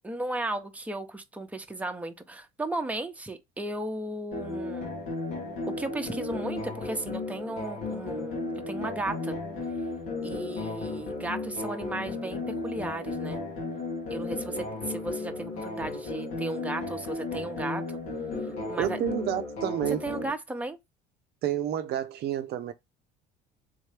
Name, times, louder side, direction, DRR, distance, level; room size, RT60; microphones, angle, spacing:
voice 1, 0.0-4.9 5.8-9.4 10.2-13.4 14.1-18.0 18.7-19.0 20.0-20.8, right 2 dB, 5° right, 0.8 m, -35 dB
sound 1, 4.3-20.3, left 3 dB, 80° left, 1.8 m, -34 dB
voice 2, 18.8-20.0 21.4-22.7, right 11 dB, 55° right, 0.6 m, -29 dB
3.7 x 3.1 x 3.3 m
supercardioid pair, 80°, 19 cm